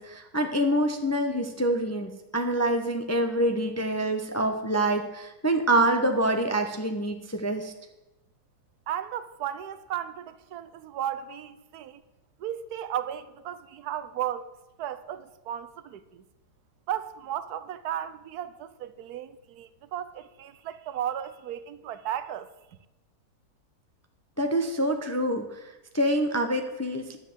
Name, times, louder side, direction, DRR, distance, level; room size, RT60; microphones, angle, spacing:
voice 1, 0.0-7.7 24.4-27.2, right 1 dB, 15° left, 0.5 m, -26 dB
voice 2, 8.9-12.0 12.4-14.5 14.8-16.2 16.9-22.5, right 10 dB, 80° right, 1.2 m, -35 dB
10.5 x 7.2 x 7.8 m
omnidirectional pair, 1.7 m